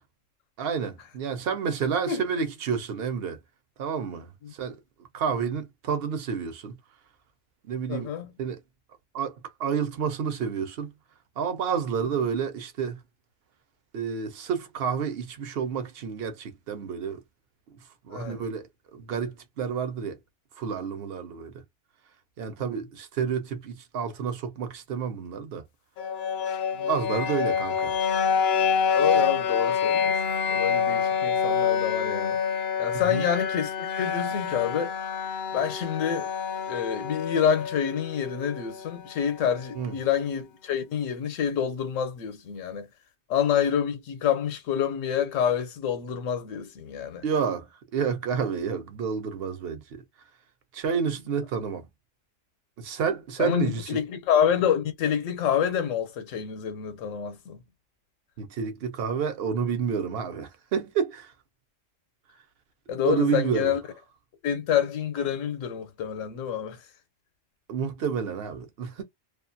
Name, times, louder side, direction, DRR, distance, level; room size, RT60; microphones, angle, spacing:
voice 1, 0.6-3.4 3.8-4.8 5.1-6.8 7.7-8.1 8.4-8.6 9.1-10.9 11.4-13.0 13.9-17.2 18.0-18.6 18.9-20.2 20.6-21.5 22.4-25.6 26.8-28.0 32.9-33.2 39.7-40.0 47.2-47.7 47.9-50.0 50.7-51.9 52.8-54.0 58.4-61.3 63.0-63.7 67.7-69.0, right 6 dB, 60° right, 0.8 m, -29 dB
voice 2, 7.9-8.3 18.1-18.4 22.6-22.8 26.7-26.9 28.9-30.2 30.5-32.4 32.8-34.9 35.5-36.3 36.7-42.9 43.3-47.2 53.4-57.6 62.9-63.8 64.4-66.8, left 8 dB, 85° left, 1.0 m, -27 dB
sound 1, 26.0-39.9, left 6 dB, 65° left, 0.7 m, -27 dB
2.5 x 2.3 x 2.5 m
omnidirectional pair, 1.3 m